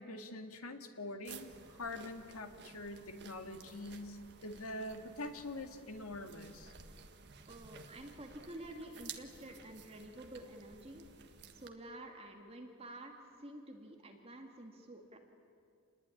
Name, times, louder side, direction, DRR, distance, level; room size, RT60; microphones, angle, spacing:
voice 1, 0.0-6.7, left 2 dB, 70° left, 6 dB, 2.2 m, -45 dB
sound 1, 1.2-11.7, right 6 dB, 50° right, 1.6 m, -54 dB
voice 2, 7.5-11.1 11.5-13.1 13.4-15.2, right 1 dB, 25° right, 3 dB, 2.3 m, -50 dB
28.5 x 20.5 x 10.0 m, 2.3 s
head